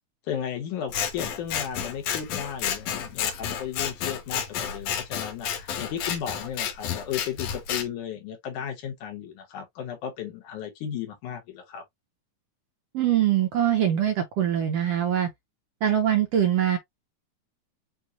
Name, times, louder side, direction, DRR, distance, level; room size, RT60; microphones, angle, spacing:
voice 1, 0.3-11.8, left 9 dB, 85° left, 2.6 m, -35 dB
Scissors, 0.9-7.9, left 8 dB, 70° left, 1.9 m, -31 dB
voice 2, 12.9-15.3 15.8-16.8, right 10 dB, 70° right, 1.5 m, -23 dB
6.2 x 2.6 x 2.7 m
omnidirectional pair, 3.5 m